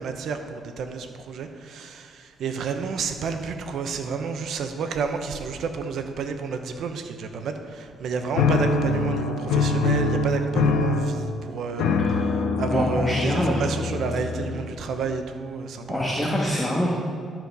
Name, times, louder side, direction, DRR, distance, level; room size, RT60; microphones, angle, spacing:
voice 1, 0.0-12.3 12.6-16.3, right 5 dB, 70° right, 6 dB, 0.9 m, -30 dB
sound 1, 8.4-14.8, left 3 dB, 85° left, 0.8 m, -24 dB
voice 2, 12.0-12.4 12.7-13.6 15.1-15.2 15.9-16.9, left 1 dB, 5° left, -5 dB, 1.6 m, -25 dB
13.0 x 4.4 x 5.4 m, 2.3 s
cardioid pair, 90°, 0 cm